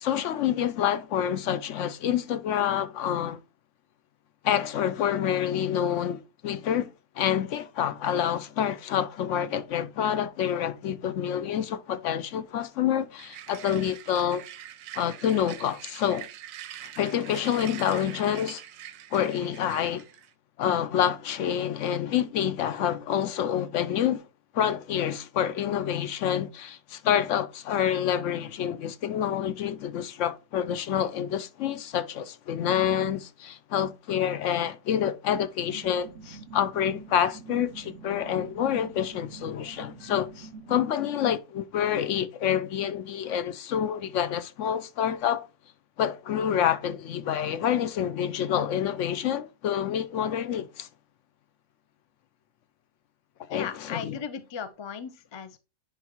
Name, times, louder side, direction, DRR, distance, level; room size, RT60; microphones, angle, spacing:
voice 1, 0.0-3.4 4.4-6.9 7.2-14.4 14.9-16.3 17.0-18.6 19.1-20.0 20.6-24.2 24.5-45.5 46.0-50.9 53.5-54.2, left 9 dB, 70° left, 0.9 m, -27 dB
sound 1, 13.2-20.3, right 11 dB, 90° right, 1.0 m, -44 dB
sound 2, 35.6-40.8, right 5 dB, 65° right, 0.8 m, -46 dB
voice 2, 53.5-55.6, left 7 dB, 40° left, 0.4 m, -37 dB
10.0 x 3.9 x 2.9 m
omnidirectional pair, 1.4 m